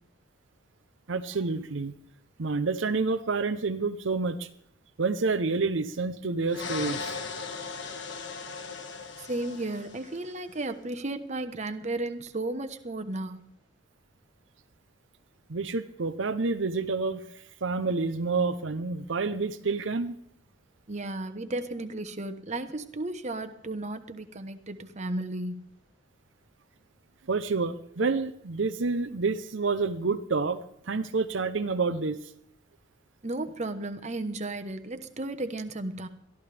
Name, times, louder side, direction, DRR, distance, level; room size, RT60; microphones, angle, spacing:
voice 1, 1.1-1.9 2.4-4.5 5.0-7.2 15.5-20.2 27.3-32.3, right 4 dB, 70° right, 9 dB, 0.7 m, -28 dB
sound 1, 6.5-10.4, left 5 dB, 65° left, 1.6 m, -38 dB
voice 2, 9.2-13.4 20.9-25.6 33.2-36.1, right 2 dB, 35° right, 8 dB, 1.1 m, -34 dB
22.5 x 13.5 x 3.4 m, 0.71 s
head